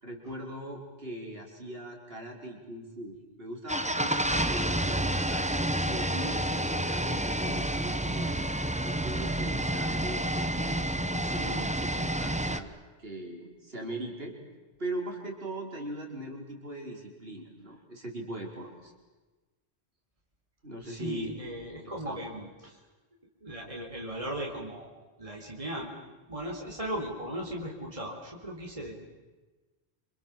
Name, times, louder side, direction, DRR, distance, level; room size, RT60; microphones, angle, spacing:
voice 1, 0.0-8.3 8.8-12.7 13.0-14.4 14.8-18.9 20.6-21.3 22.0-22.2, right 1 dB, 60° right, 0 dB, 5.1 m, -40 dB
sound 1, 3.7-12.6, right 1 dB, 5° right, 1.0 m, -29 dB
voice 2, 20.8-22.8 23.4-24.9 25.2-25.9 26.3-28.9, equal, 30° right, -1 dB, 4.3 m, -37 dB
27.5 x 27.5 x 7.7 m, 1.2 s
omnidirectional pair, 1.1 m